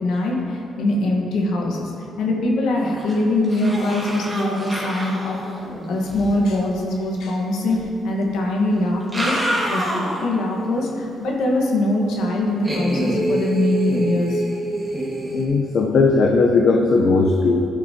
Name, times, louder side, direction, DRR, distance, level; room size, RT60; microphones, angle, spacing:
voice 1, 0.0-5.4 5.9-9.4 9.7-14.4, left 1 dB, 80° left, -1 dB, 1.2 m, -22 dB
sound 1, 2.8-3.2 3.4-6.3 7.7-7.8 8.9-10.4 10.8-10.9 12.6-15.5, right 1 dB, 10° right, 1.7 m, -26 dB
voice 2, 15.3-17.7, left 3 dB, 65° left, 1 dB, 0.6 m, -17 dB
11.5 x 6.6 x 2.8 m, 2.6 s
cardioid pair, 90°, 0 cm